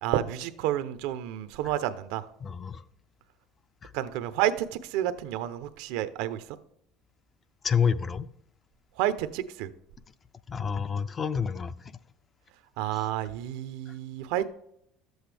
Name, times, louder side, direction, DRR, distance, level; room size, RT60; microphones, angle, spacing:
voice 1, 0.0-2.2 3.9-6.4 9.0-9.7 12.8-14.5, right 12 dB, 75° right, 0.7 m, -30 dB
voice 2, 2.4-2.8 3.8-3.9 7.6-8.3 10.5-11.7, left 6 dB, 20° left, 0.4 m, -28 dB
12.0 x 7.9 x 3.4 m
cardioid pair, 160°, 0 cm